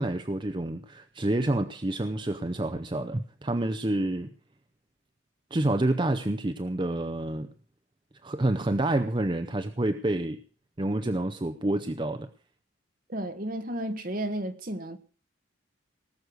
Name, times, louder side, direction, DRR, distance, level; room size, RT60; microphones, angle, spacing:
voice 1, 0.0-4.3 5.5-7.5 8.2-10.4 10.8-12.3, right 1 dB, 25° right, 0.6 m, -28 dB
voice 2, 13.1-15.0, right 1 dB, 45° right, 1.5 m, -33 dB
19.0 x 6.6 x 8.0 m
head